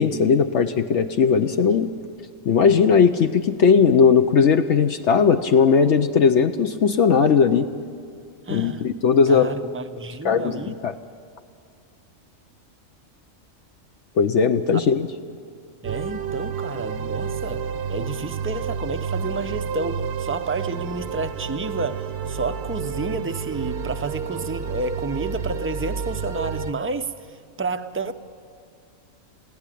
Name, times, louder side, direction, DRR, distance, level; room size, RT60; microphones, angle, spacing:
voice 1, 0.0-1.9 2.5-7.7 8.5-9.5 10.2-10.9 14.2-15.1, left 6 dB, 65° left, 7 dB, 1.0 m, -18 dB
voice 2, 8.5-8.9 9.3-10.8 15.8-28.1, right 3 dB, 15° right, 9 dB, 0.4 m, -30 dB
sound 1, 15.8-26.7, right 7 dB, 55° right, 0.9 m, -30 dB
21.0 x 16.0 x 10.0 m, 2.4 s
omnidirectional pair, 1.4 m